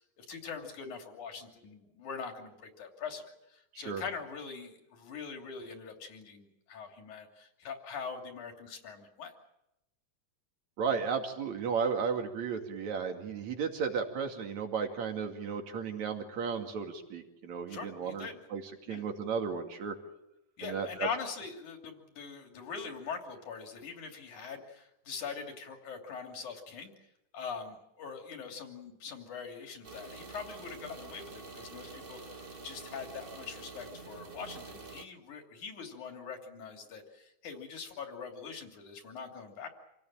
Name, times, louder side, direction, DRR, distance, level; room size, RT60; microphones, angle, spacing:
voice 1, 0.2-9.3 17.7-18.4 18.9-19.0 20.6-26.9 27.3-39.7, left 5 dB, 70° left, 4 dB, 4.4 m, -42 dB
voice 2, 10.8-18.6 18.9-20.0 20.6-21.1, right 6 dB, 65° right, 4 dB, 3.7 m, -34 dB
sound 1, 29.8-35.0, right 3 dB, 35° right, 0.8 m, -47 dB
27.5 x 17.5 x 8.9 m, 0.88 s
omnidirectional pair, 3.6 m